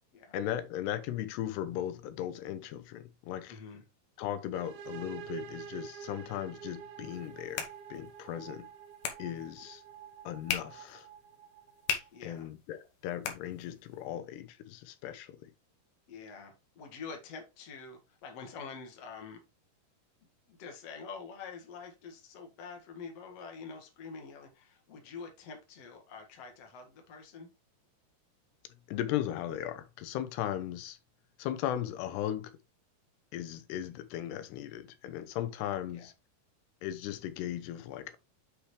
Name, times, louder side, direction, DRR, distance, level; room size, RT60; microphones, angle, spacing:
voice 1, 0.3-3.5 4.2-8.7 9.2-9.8 10.2-11.1 12.2-15.5 28.9-31.0 31.4-32.5 33.3-36.1 36.8-38.2, left 11 dB, 90° left, 3.0 m, -37 dB
voice 2, 3.5-3.8 12.1-12.5 16.1-19.4 20.5-27.5 35.9-36.1, left 5 dB, 45° left, 2.4 m, -46 dB
sound 1, 4.5-12.2, right 8 dB, 75° right, 2.6 m, -47 dB
sound 2, 7.0-14.1, left 7 dB, 65° left, 2.6 m, -41 dB
8.1 x 6.0 x 3.2 m
omnidirectional pair, 4.6 m